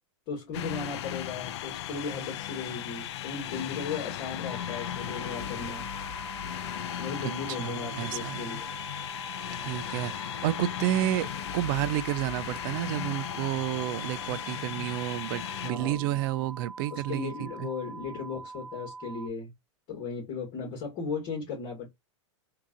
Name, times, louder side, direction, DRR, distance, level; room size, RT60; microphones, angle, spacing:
voice 1, 0.3-5.9 7.0-8.7 15.6-16.1 16.9-19.5 19.9-21.9, left 5 dB, 40° left, 2.0 m, -36 dB
sound 1, 0.5-15.7, left 12 dB, 65° left, 0.4 m, -37 dB
sound 2, 4.4-19.3, right 4 dB, ahead, 1.0 m, -44 dB
voice 2, 7.2-8.4 9.6-17.7, right 14 dB, 45° right, 0.4 m, -31 dB
3.7 x 2.8 x 2.4 m
hypercardioid pair, 130°, 16 cm